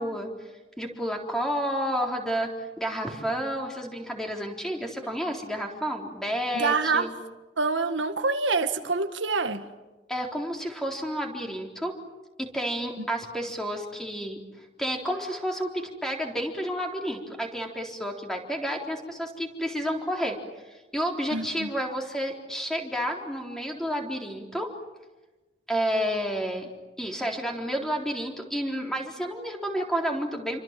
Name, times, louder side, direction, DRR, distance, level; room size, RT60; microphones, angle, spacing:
voice 1, 0.0-2.5 2.8-7.2 10.1-12.0 12.4-24.7 25.7-26.7 27.0-30.6, equal, 5° left, 1 dB, 3.9 m, -30 dB
voice 2, 6.5-7.1 7.6-9.7 13.0-13.1 21.3-21.7, right 4 dB, 85° right, 7 dB, 1.8 m, -26 dB
29.0 x 25.5 x 7.6 m, 1.2 s
head